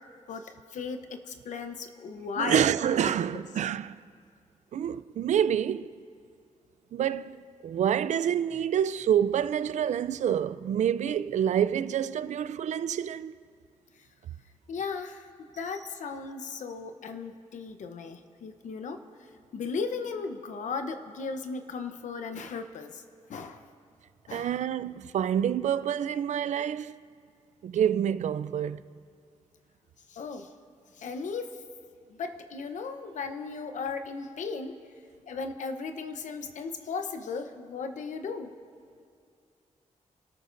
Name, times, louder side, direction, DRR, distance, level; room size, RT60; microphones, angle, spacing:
voice 1, 0.3-2.6 3.0-3.1 14.7-15.2 15.6-19.0 19.5-23.0 23.3-23.6 24.3-24.5 30.1-30.5 31.0-31.6 32.2-34.8 35.3-38.5, left 5 dB, 85° left, 0.8 m, -36 dB
voice 2, 2.4-3.9 4.7-6.0 6.9-13.3 24.3-27.0 27.6-28.8, right 9 dB, 70° right, 0.4 m, -27 dB
28.5 x 13.0 x 2.6 m
wide cardioid pair, 145°, 12 cm